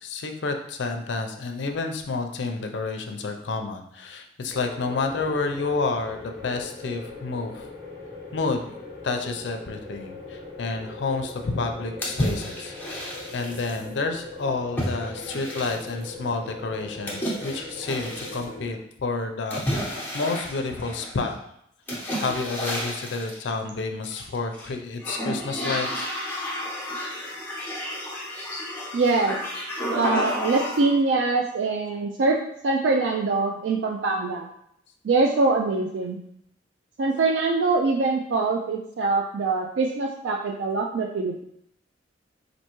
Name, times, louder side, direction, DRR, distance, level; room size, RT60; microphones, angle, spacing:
voice 1, 0.0-7.7 8.3-8.7 9.0-21.4 22.2-26.1, left 3 dB, 75° left, 5 dB, 0.5 m, -30 dB
sound 1, 4.5-18.8, left 2 dB, 35° right, 1.5 m, -40 dB
sound 2, 12.0-13.8 14.8-16.1 17.1-18.4 19.5-21.2 21.9-23.4 24.0-24.7 25.0-31.0, equal, 10° left, 0.8 m, -31 dB
voice 2, 28.9-29.4 29.9-32.4 32.6-34.5 35.0-36.2 37.0-41.4, right 3 dB, 80° right, 1 dB, 0.4 m, -23 dB
4.4 x 2.6 x 2.9 m, 0.72 s
head